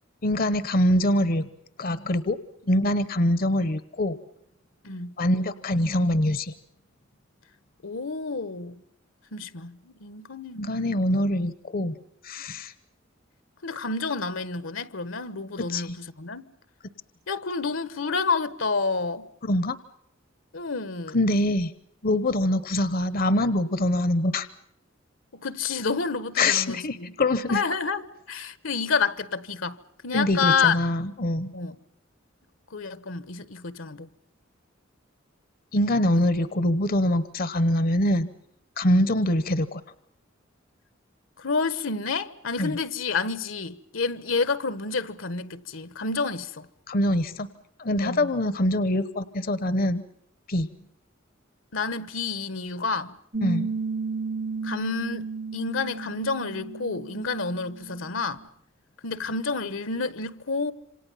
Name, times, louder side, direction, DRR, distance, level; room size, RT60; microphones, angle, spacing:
voice 1, 0.2-1.5 1.8-2.4 2.7-4.2 5.2-6.5 10.6-12.0 12.2-12.7 15.6-16.0 19.4-19.8 21.1-21.7 22.0-24.5 26.4-27.6 30.1-31.5 35.7-38.3 38.8-39.8 42.6-42.8 46.9-47.5 47.8-50.0 50.5-50.7 53.4-53.7, left 1 dB, 50° left, 0.9 m, -24 dB
voice 2, 4.8-5.1 7.8-8.8 9.3-11.0 13.6-16.4 17.3-19.3 20.5-21.2 25.3-27.1 27.5-28.0 28.3-29.8 30.0-30.8 31.5-31.8 32.7-34.1 36.1-36.3 38.8-39.1 41.4-46.7 48.0-48.3 51.7-53.2 54.6-58.4 59.0-60.7, left 4 dB, 75° left, 1.2 m, -29 dB
Piano, 53.3-58.5, right 4 dB, 35° right, 0.9 m, -33 dB
27.5 x 26.5 x 5.6 m
head